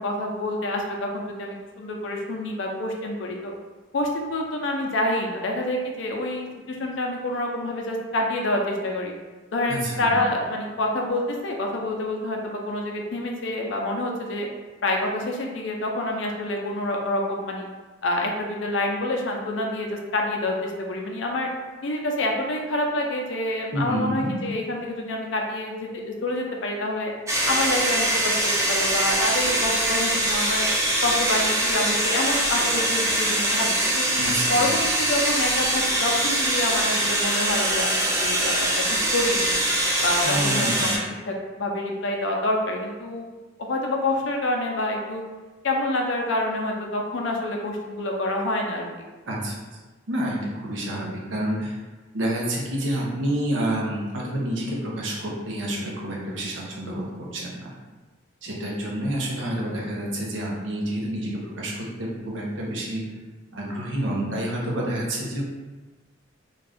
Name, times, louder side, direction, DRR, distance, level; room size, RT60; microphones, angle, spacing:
voice 1, 0.0-3.5 3.9-9.1 9.5-14.5 14.8-17.7 18.0-21.5 21.8-27.1 27.5-30.7 31.0-34.1 34.5-38.7 39.1-39.6 40.0-43.3 43.6-45.2 45.6-48.9, left 1 dB, 70° left, 1 dB, 0.5 m, -27 dB
voice 2, 9.7-10.2 23.7-24.4 34.2-34.7 40.2-41.2 49.3-49.6 50.1-51.8 52.1-57.0 57.3-57.7 58.4-61.7 62.0-63.0 63.5-65.4, right 1 dB, 70° right, -3 dB, 0.7 m, -28 dB
sound 1, 27.3-41.0, right 1 dB, 15° right, 0.4 m, -23 dB
2.6 x 2.3 x 3.3 m, 1.2 s
head